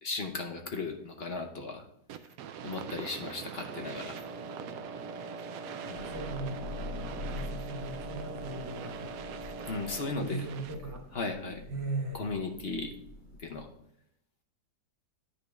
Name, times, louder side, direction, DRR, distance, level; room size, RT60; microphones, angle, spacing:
voice 1, 0.0-1.9 2.6-4.3 5.8-6.1 9.7-10.4 11.1-11.6 12.1-12.9 13.4-13.7, left 3 dB, 50° left, 4 dB, 0.8 m, -36 dB
sound 1, 2.1-11.0, right 8 dB, 70° right, 0.9 m, -45 dB
Wind instrument woodwind instrument, 3.7-10.3, right 3 dB, 90° right, 1.5 m, -43 dB
Thunder / Rain, 5.9-13.6, left 2 dB, 90° left, 4.1 m, -45 dB
voice 2, 6.0-9.4 10.1-11.2 11.7-12.4, right 2 dB, 15° right, 0 dB, 1.1 m, -39 dB
9.9 x 3.4 x 5.2 m, 0.75 s
omnidirectional pair, 1.8 m